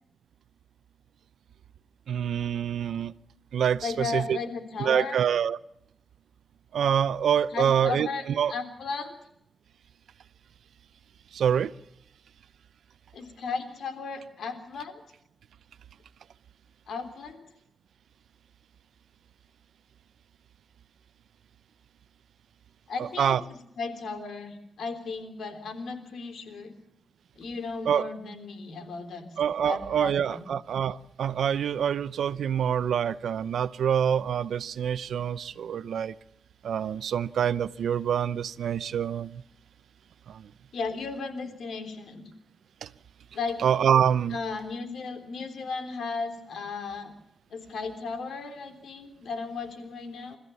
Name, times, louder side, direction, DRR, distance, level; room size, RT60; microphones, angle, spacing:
voice 1, 2.1-3.1 3.5-4.4 4.8-5.6 6.7-8.5 11.3-11.7 23.0-23.4 27.9-28.1 29.4-36.1 36.6-39.4 40.3-40.5 42.8-42.9 43.6-44.4, right 8 dB, 90° right, 0.7 m, -26 dB
voice 2, 3.8-5.2 7.5-9.1 13.1-15.0 16.9-17.5 22.9-26.7 27.4-30.5 40.7-42.3 43.3-43.6 44.3-47.1 47.5-50.4, left 4 dB, 80° left, 3.5 m, -35 dB
29.5 x 14.5 x 7.0 m
cardioid pair, 90°, 0 cm